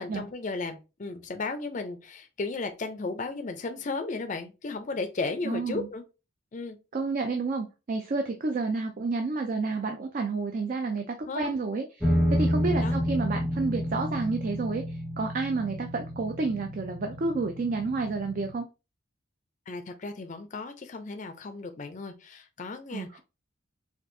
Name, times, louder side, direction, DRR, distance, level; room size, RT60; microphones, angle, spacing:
voice 1, 0.0-6.0 6.5-6.8 11.3-11.6 12.8-13.0 19.7-23.2, left 3 dB, 35° left, 0.4 m, -35 dB
voice 2, 5.4-5.9 6.9-18.6 22.9-23.2, right 3 dB, 40° right, 0.4 m, -30 dB
sound 1, 12.0-18.5, equal, 5° right, 0.8 m, -30 dB
4.4 x 2.4 x 2.6 m
head